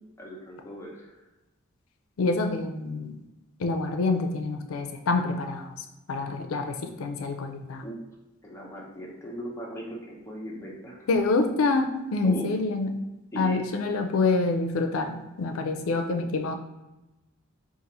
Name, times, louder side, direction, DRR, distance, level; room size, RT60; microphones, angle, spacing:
voice 1, 0.2-1.2 7.8-8.0 8.4-11.0 12.2-12.5 13.3-13.6, equal, 15° left, -3 dB, 0.8 m, -38 dB
voice 2, 2.2-3.2 3.6-5.7 6.1-7.8 11.1-12.9 13.4-16.5, left 3 dB, 90° left, 4 dB, 0.4 m, -26 dB
3.9 x 2.5 x 4.2 m, 1.0 s
head